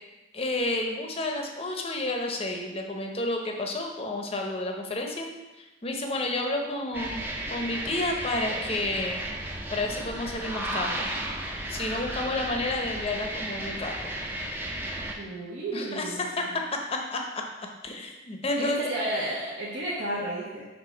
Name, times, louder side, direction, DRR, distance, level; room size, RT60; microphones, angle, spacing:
voice 1, 0.3-5.3 5.5-7.2 7.5-9.2 9.7-11.1 11.7-14.1 15.7-16.4 16.9-17.2 17.8-18.8, left 2 dB, 30° left, 2 dB, 0.6 m, -30 dB
sound 1, 6.9-15.1, right 1 dB, 10° right, 0.5 m, -34 dB
voice 2, 15.2-16.6 18.6-20.7, right 1 dB, 70° right, -8 dB, 1.2 m, -32 dB
5.8 x 3.4 x 5.0 m, 1.1 s
head